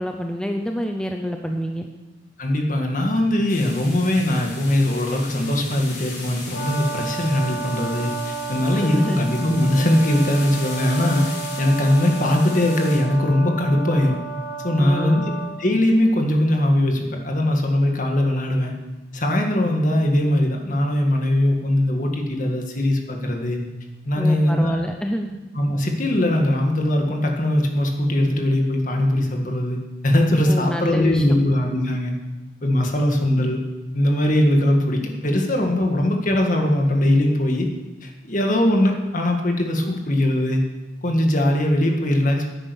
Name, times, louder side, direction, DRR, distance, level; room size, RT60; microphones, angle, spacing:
voice 1, 0.0-1.9 8.7-9.2 14.8-15.3 24.2-25.3 30.5-31.4, equal, 5° left, 3 dB, 0.6 m, -27 dB
voice 2, 2.4-14.2 14.6-15.3 15.6-18.7 19.1-23.6 24.1-24.8 25.6-29.8 30.0-32.1 32.6-33.6 33.9-37.7 38.0-40.6 41.0-42.5, left 1 dB, 45° left, 2 dB, 1.9 m, -20 dB
sound 1, 3.5-13.0, left 3 dB, 60° left, 4.5 m, -38 dB
Brass instrument, 6.5-15.5, right 4 dB, 85° left, 4.4 m, -33 dB
11.0 x 8.9 x 7.0 m, 1.1 s
head